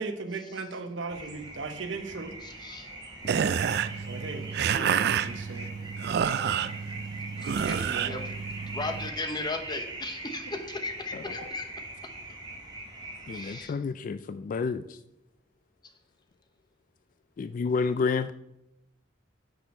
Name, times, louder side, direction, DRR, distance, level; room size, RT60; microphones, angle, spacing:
voice 1, 0.0-2.3 4.1-5.7 7.7-8.2, right 3 dB, 75° right, 7 dB, 1.0 m, -37 dB
sound 1, 1.1-13.6, right 2 dB, 25° right, 1.6 m, -42 dB
voice 2, 2.4-2.9 3.2-3.5 3.7-3.8 7.4-7.6 8.0-8.2 8.7-11.7 13.3-13.8, left 3 dB, 25° left, 6 dB, 0.9 m, -36 dB
sound 2, 3.2-9.1, right 7 dB, 55° right, 0.3 m, -29 dB
voice 3, 13.3-15.0 17.4-18.3, left 4 dB, 45° left, 13 dB, 0.3 m, -30 dB
9.9 x 6.1 x 4.3 m, 0.86 s
head